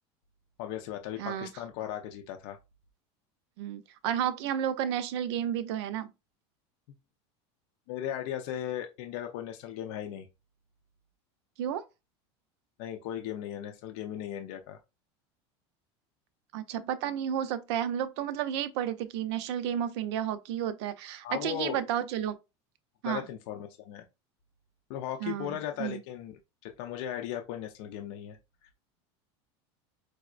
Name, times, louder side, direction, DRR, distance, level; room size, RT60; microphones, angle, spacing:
voice 1, 0.6-2.6 7.9-10.3 12.8-14.8 21.2-21.8 23.0-24.0 24.9-28.4, left 11 dB, 60° left, 0.5 m, -37 dB
voice 2, 1.2-1.5 3.6-6.1 11.6-11.9 16.5-22.4 23.0-23.2 25.2-26.0, right 10 dB, 70° right, 0.5 m, -32 dB
4.7 x 2.0 x 2.4 m
supercardioid pair, 145°, 15 cm